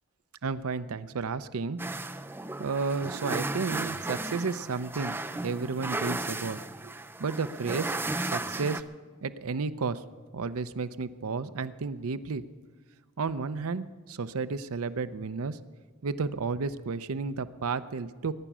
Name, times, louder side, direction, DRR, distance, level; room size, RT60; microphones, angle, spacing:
voice 1, 0.4-1.8 2.6-5.2 5.4-6.9 7.2-7.9 8.2-8.8 9.2-10.0 10.3-12.4 13.2-15.6 16.0-18.3, right 4 dB, 80° right, 13 dB, 0.6 m, -32 dB
sound 1, 1.8-8.8, right 2 dB, 10° right, 0.4 m, -35 dB
21.5 x 10.0 x 6.1 m, 1.5 s
head